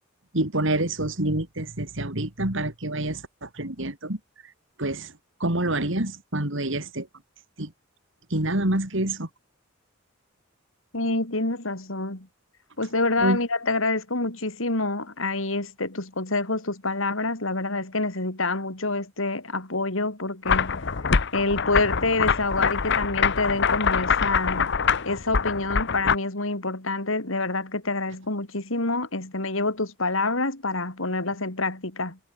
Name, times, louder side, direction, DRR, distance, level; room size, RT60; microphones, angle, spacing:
voice 1, 0.3-4.2 4.8-5.1 5.4-7.1 7.6-7.7 8.3-9.3 13.2-13.4 24.6-24.7, right 1 dB, 70° right, 3.6 m, -27 dB
voice 2, 10.9-12.3 12.8-20.8 21.3-24.6 25.1-32.2, left 2 dB, 80° left, 4.2 m, -27 dB
sound 1, 20.5-26.2, left 6 dB, 60° left, 1.0 m, -24 dB
head